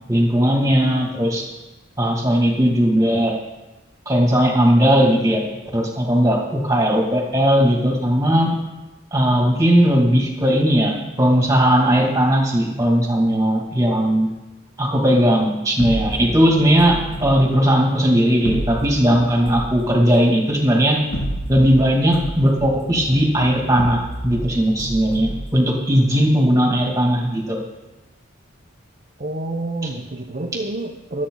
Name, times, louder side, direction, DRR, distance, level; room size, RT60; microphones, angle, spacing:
voice 1, 0.1-1.4 2.0-3.3 4.1-5.4 5.7-8.5 9.1-14.3 14.8-21.0 21.5-27.6, equal, 15° right, 0 dB, 2.4 m, -17 dB
sound 1, 15.8-17.3 18.4-19.8 20.9-21.8 22.1-24.5 24.8-25.4, equal, 85° left, 3.7 m, -29 dB
voice 2, 29.2-31.3, right 2 dB, 40° right, 0 dB, 0.9 m, -28 dB
25.5 x 8.7 x 4.0 m, 1.1 s
head